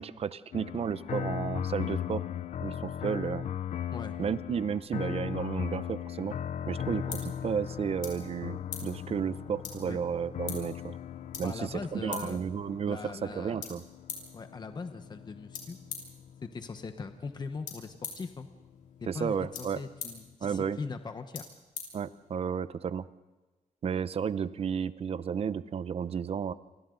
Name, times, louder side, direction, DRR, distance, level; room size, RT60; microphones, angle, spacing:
voice 1, 0.0-2.2 2.6-3.5 4.2-6.4 6.7-11.0 11.4-13.8 19.1-19.8 20.4-20.8 21.9-23.1 23.8-26.5, right 7 dB, 50° right, 15 dB, 0.7 m, -33 dB
sound 1, 0.5-17.7 18.4-20.3, left 9 dB, 60° left, 0.6 m, -38 dB
sound 2, 6.3-22.6, left 6 dB, 80° left, 5.8 m, -47 dB
voice 2, 11.4-12.4 12.9-13.6 14.3-15.8 16.4-18.5 19.1-21.4, left 4 dB, 35° left, 8 dB, 1.1 m, -40 dB
29.0 x 24.5 x 4.0 m, 1.2 s
wide cardioid pair, 140°, 13 cm